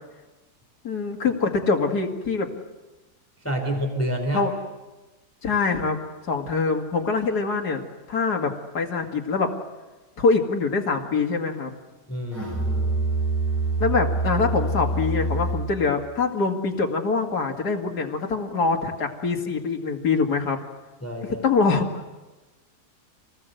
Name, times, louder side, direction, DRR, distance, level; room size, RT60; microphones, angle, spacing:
voice 1, 0.8-2.5 4.3-4.5 5.4-6.0 6.3-7.8 8.1-9.5 10.2-11.7 13.8-20.6 21.2-22.2, left 4 dB, 70° left, 2 dB, 2.7 m, -24 dB
voice 2, 3.4-4.5 12.1-13.0 21.0-21.4, equal, 10° left, 3 dB, 3.5 m, -28 dB
Musical instrument, 12.3-15.8, right 2 dB, 5° right, 6.8 m, -25 dB
27.0 x 19.0 x 8.0 m, 1.1 s
omnidirectional pair, 1.8 m